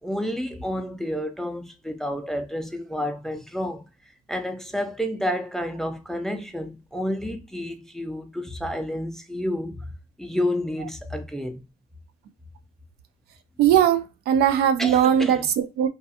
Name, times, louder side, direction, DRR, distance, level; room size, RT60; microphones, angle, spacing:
voice 1, 0.0-3.8 4.3-9.8 10.2-11.6 14.8-15.4, left 1 dB, ahead, 0.4 m, -30 dB
voice 2, 13.6-15.9, right 9 dB, 70° right, 0.4 m, -20 dB
2.3 x 2.3 x 2.7 m
cardioid pair, 110°, 17 cm